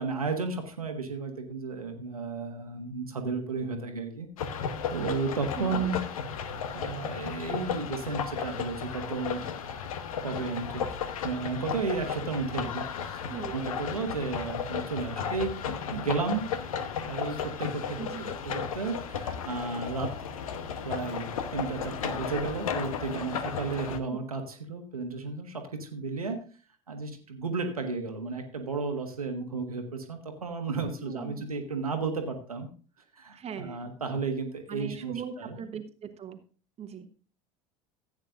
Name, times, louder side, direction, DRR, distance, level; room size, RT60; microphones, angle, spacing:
voice 1, 0.0-4.3 4.9-6.0 6.7-9.5 10.2-11.0 11.2-16.5 17.1-18.0 18.3-20.3 20.8-26.4 26.9-32.7 33.1-35.1 35.4-35.6, right 4 dB, 90° right, 5 dB, 1.4 m, -33 dB
sound 1, 4.4-24.0, left 7 dB, 75° left, 1.0 m, -34 dB
voice 2, 5.6-5.9 13.3-13.6 18.0-18.3 24.1-24.2 30.8-31.4 33.3-33.9 34.7-36.4 36.8-37.1, right 7 dB, 35° right, 9 dB, 1.2 m, -39 dB
15.5 x 8.8 x 2.5 m, 0.39 s
figure-of-eight pair, 70°, 18 cm